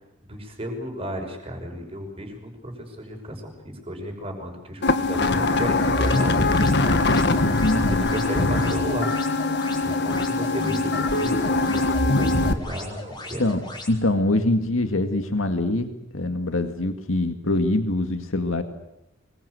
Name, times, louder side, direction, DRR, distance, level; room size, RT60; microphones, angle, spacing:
voice 1, 0.2-7.1 7.4-9.1 9.8-13.5, equal, 30° right, 3 dB, 5.8 m, -33 dB
sound 1, 4.8-12.5, left 2 dB, 55° left, 1.6 m, -22 dB
sound 2, 5.8-13.9, left 2 dB, 20° left, 4.7 m, -39 dB
voice 2, 7.6-8.1 12.1-12.5 13.4-18.6, left 2 dB, 85° left, 7 dB, 2.0 m, -24 dB
25.0 x 22.0 x 8.2 m, 0.90 s
head